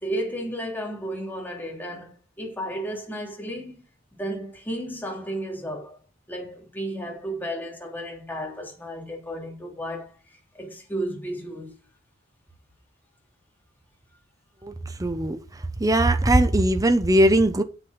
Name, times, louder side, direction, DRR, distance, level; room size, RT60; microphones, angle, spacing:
voice 1, 0.0-3.8 4.2-6.0 6.3-10.1 10.5-11.7, right 1 dB, 10° left, 3.3 m, -33 dB
voice 2, 15.0-15.4 15.8-17.6, right 1 dB, 20° right, 0.8 m, -19 dB
8.8 x 8.2 x 5.3 m
head